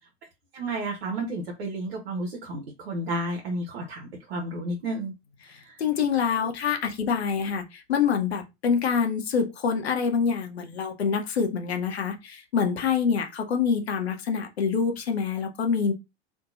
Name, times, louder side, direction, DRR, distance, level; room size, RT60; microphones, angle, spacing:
voice 1, 0.5-5.1 5.6-5.8, right 1 dB, 65° right, 0.7 m, -32 dB
voice 2, 5.5-15.9, left 6 dB, 70° left, 0.6 m, -26 dB
2.7 x 2.2 x 2.4 m
figure-of-eight pair, 85°, 33 cm